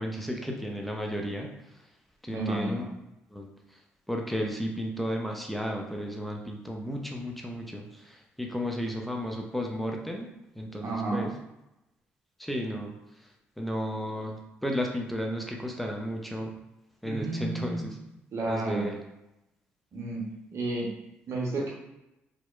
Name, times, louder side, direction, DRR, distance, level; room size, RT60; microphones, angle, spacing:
voice 1, 0.0-1.5 2.2-2.8 3.3-3.5 4.1-11.3 12.4-12.9 13.6-16.5 17.0-18.0 18.5-19.0, equal, ahead, 1 dB, 0.5 m, -33 dB
voice 2, 2.3-2.9 10.8-11.3 17.0-17.9 18.3-18.9 19.9-20.2 20.5-20.9 21.3-21.7, right 2 dB, 55° right, -3 dB, 0.8 m, -31 dB
2.8 x 2.0 x 2.3 m, 0.90 s
hypercardioid pair, 50°, 6 cm